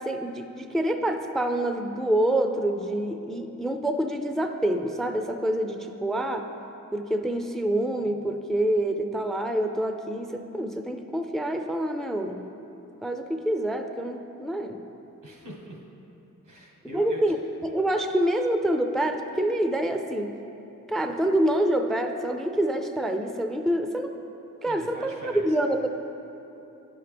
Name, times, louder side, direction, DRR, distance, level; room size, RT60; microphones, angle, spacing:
voice 1, 0.0-6.5 6.9-12.5 13.0-14.8 16.9-17.4 17.6-20.4 20.9-24.1 24.6-25.9, right 1 dB, ahead, 6 dB, 0.4 m, -26 dB
voice 2, 15.2-15.8 16.4-17.2 24.6-25.6, equal, 85° right, -1 dB, 1.3 m, -42 dB
9.7 x 5.8 x 3.4 m, 2.9 s
cardioid pair, 60°, 32 cm